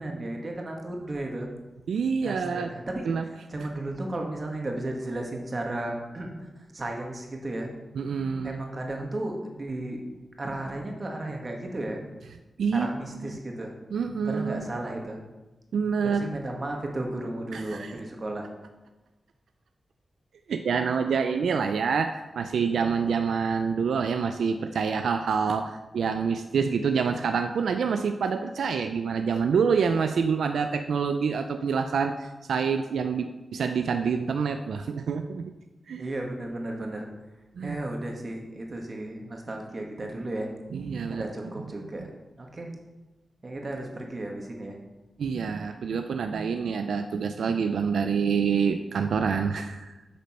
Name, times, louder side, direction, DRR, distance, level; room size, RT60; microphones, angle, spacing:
voice 1, 0.0-1.5 2.2-7.7 8.4-10.0 10.4-12.0 12.7-13.7 14.3-15.2 16.0-18.5 36.0-37.1 37.6-40.5 41.1-42.0 42.4-42.7 43.4-44.8, right 1 dB, 45° right, 1 dB, 2.0 m, -34 dB
voice 2, 1.9-2.7 3.0-3.3 3.6-3.7 8.0-8.6 12.6-12.9 13.1-13.4 13.9-14.7 15.7-16.3 17.5-17.9 20.5-35.5 35.9-36.1 37.6-37.8 40.7-41.3 42.0-42.1 45.2-49.9, right 6 dB, 90° right, 7 dB, 0.4 m, -27 dB
8.7 x 5.3 x 6.4 m, 1.1 s
cardioid pair, 65°, 0 cm